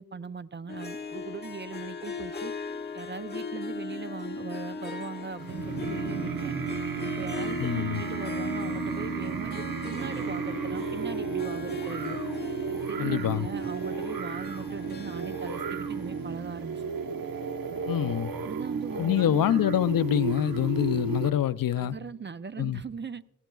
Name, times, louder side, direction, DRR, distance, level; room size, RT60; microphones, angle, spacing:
voice 1, 0.0-2.5 2.9-6.5 7.0-12.2 12.7-16.8 18.4-19.5 21.8-23.2, right 5 dB, 30° right, 0.5 m, -40 dB
Harp, 0.7-17.2, left 4 dB, 30° left, 1.4 m, -38 dB
sound 1, 5.4-21.3, right 6 dB, 70° right, 1.0 m, -33 dB
voice 2, 7.6-8.0 13.0-13.5 17.9-18.3 19.0-22.0 22.6-22.8, left 11 dB, 70° left, 0.5 m, -26 dB
23.5 x 16.0 x 2.3 m
wide cardioid pair, 100°, 36 cm